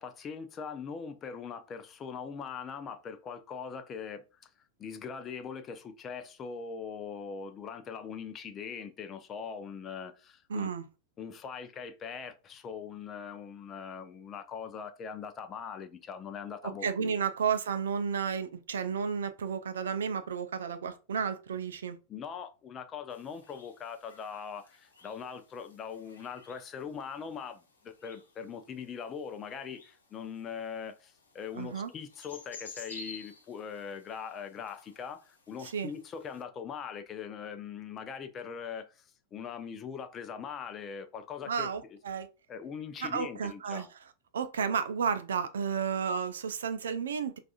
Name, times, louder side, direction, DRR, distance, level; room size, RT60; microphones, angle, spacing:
voice 1, 0.0-4.5 4.8-10.7 11.2-17.2 22.1-39.0 39.3-42.0 42.5-43.9, left 6 dB, 25° left, 0.5 m, -41 dB
voice 2, 10.5-10.9 16.6-22.0 31.5-31.9 35.6-35.9 41.5-42.3 43.0-43.9 44.3-47.4, right 6 dB, 65° right, 0.4 m, -32 dB
Forest Trudge, 23.1-36.4, left 4 dB, 75° left, 0.9 m, -53 dB
4.7 x 2.4 x 2.4 m
figure-of-eight pair, 90°, 0 cm